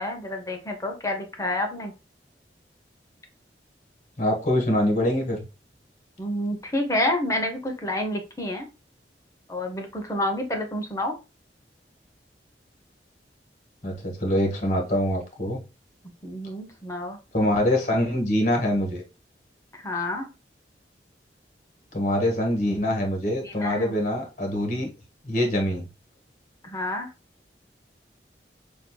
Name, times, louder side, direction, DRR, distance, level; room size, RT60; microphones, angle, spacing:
voice 1, 0.0-1.9 6.2-8.6 9.5-11.1 16.2-17.2 19.7-20.3 23.4-24.0 26.6-27.1, left 1 dB, 20° left, 3 dB, 0.8 m, -29 dB
voice 2, 4.2-5.4 13.8-15.6 17.3-19.0 21.9-24.9 25.2-25.9, left 1 dB, 45° left, 1 dB, 1.4 m, -24 dB
6.3 x 2.7 x 2.2 m, 0.29 s
head